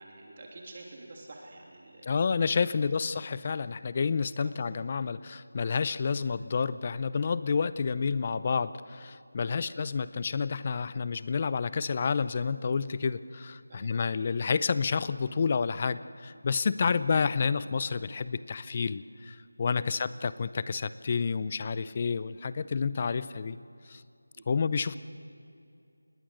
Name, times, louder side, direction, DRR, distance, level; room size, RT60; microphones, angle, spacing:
voice 1, 0.0-2.1 2.7-2.8 4.4-4.5 9.4-9.6 13.8-13.9 19.7-20.0 24.4-24.6, right 2 dB, 30° right, 0 dB, 3.0 m, -49 dB
voice 2, 2.0-23.6 23.9-24.0 24.5-25.0, left 5 dB, 25° left, 16 dB, 0.6 m, -29 dB
28.0 x 20.0 x 6.5 m, 2.5 s
figure-of-eight pair, 170°, 0 cm